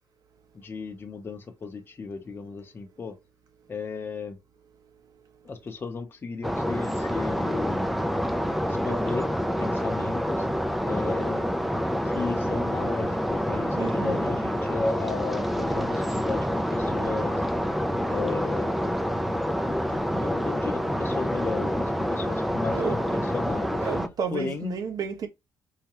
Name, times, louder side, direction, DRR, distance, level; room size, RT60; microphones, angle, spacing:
voice 1, 0.5-3.1 3.7-4.4 5.4-7.9 8.7-9.3 9.6-10.5 10.9-11.5 12.0-17.4 18.1-18.7 19.6-23.9 24.3-24.8, left 4 dB, 30° left, 0.7 m, -34 dB
sound 1, 6.4-24.1, equal, ahead, 0.4 m, -27 dB
voice 2, 13.7-14.3 22.7-23.2 23.8-25.3, right 6 dB, 55° right, 1.0 m, -32 dB
4.8 x 2.2 x 2.9 m
cardioid pair, 110°, 7 cm